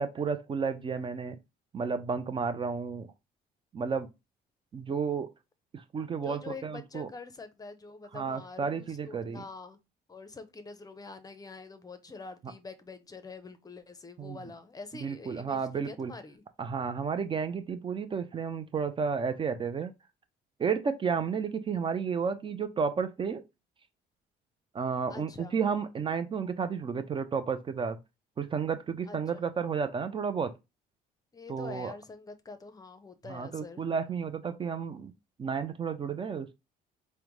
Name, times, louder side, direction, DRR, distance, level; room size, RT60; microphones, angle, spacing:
voice 1, 0.0-1.4 1.7-3.1 3.7-4.1 4.7-5.3 5.7-7.1 8.1-9.4 12.4-12.5 14.2-14.4 14.9-16.1 16.6-19.9 20.6-23.4 24.7-28.0 28.4-30.5 31.5-31.9 33.3-35.1 35.4-36.5, right 6 dB, 30° right, 0.4 m, -32 dB
voice 2, 6.2-9.8 10.1-16.4 25.1-25.6 29.1-29.4 31.3-33.8, left 4 dB, 20° left, 0.6 m, -45 dB
4.9 x 2.1 x 3.1 m
cardioid pair, 110°, 17 cm